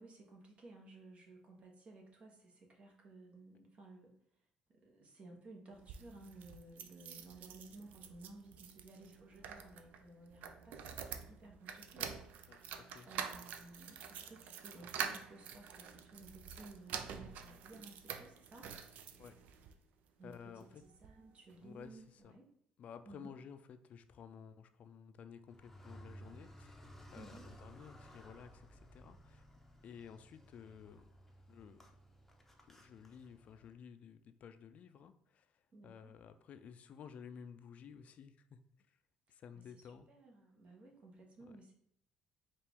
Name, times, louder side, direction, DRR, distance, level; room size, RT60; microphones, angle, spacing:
voice 1, 0.0-4.2 4.7-12.1 12.5-12.7 13.0-18.7 20.2-22.5 23.1-23.3 27.1-27.5 35.7-36.1 39.5-39.8 40.1-41.7, right 2 dB, 45° right, 1 dB, 1.1 m, -56 dB
sound 1, 5.7-19.7 20.3-21.2 21.5-21.6 21.8-21.9, right 7 dB, 75° right, 0.4 m, -47 dB
voice 2, 12.5-13.1 19.2-19.3 20.2-20.8 21.6-22.4 22.8-26.7 27.1-29.5 29.8-31.0 31.5-31.9 32.6-38.6 38.9-39.0 39.3-40.1, left 7 dB, 60° left, 10 dB, 0.4 m, -54 dB
Car, 25.5-33.7, equal, 10° left, 0.7 m, -57 dB
4.4 x 2.5 x 3.5 m, 0.73 s
supercardioid pair, 80°, 3 cm